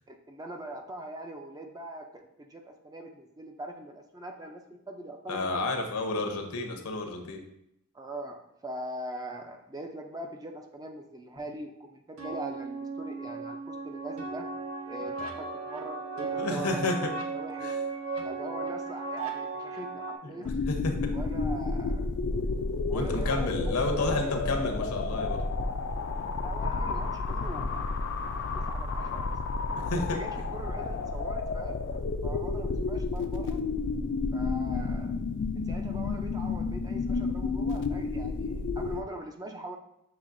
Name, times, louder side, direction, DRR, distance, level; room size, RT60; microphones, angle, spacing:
voice 1, 0.1-6.2 7.9-14.5 14.8-16.8 17.3-17.8 18.2-20.6 21.1-22.1 22.9-24.8 26.4-27.8 28.2-29.4 30.1-31.8 32.2-33.6 34.3-35.2 35.7-39.8, right 1 dB, 15° right, 3 dB, 0.4 m, -42 dB
voice 2, 5.3-7.4 16.4-17.1 17.6-17.7 20.4-20.9 22.9-25.5 29.6-30.2, left 2 dB, 75° left, 3 dB, 0.7 m, -31 dB
sound 1, 12.2-20.2, right 4 dB, 65° right, 0.6 m, -36 dB
sound 2, 20.5-39.0, left 3 dB, 55° left, 0.3 m, -31 dB
6.7 x 3.0 x 2.5 m, 0.78 s
head